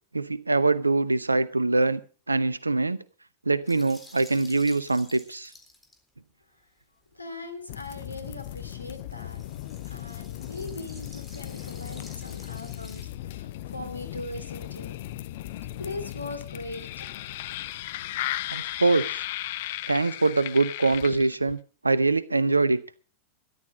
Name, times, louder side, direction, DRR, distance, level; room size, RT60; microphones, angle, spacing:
voice 1, 0.1-2.0 2.3-3.0 3.5-5.5 18.5-19.2 19.9-21.6 21.8-22.8, right 3 dB, 80° right, 17 dB, 0.8 m, -23 dB
sound 1, 3.7-6.0 7.7-13.0, left 1 dB, 5° left, 4.0 m, -51 dB
voice 2, 7.1-9.4 9.8-15.1 15.8-17.1, left 2 dB, 85° left, 8 dB, 2.8 m, -40 dB
sound 2, 7.7-21.6, left 15 dB, 55° left, 0.7 m, -36 dB
13.5 x 12.0 x 5.0 m, 0.39 s
figure-of-eight pair, 90°, 0 cm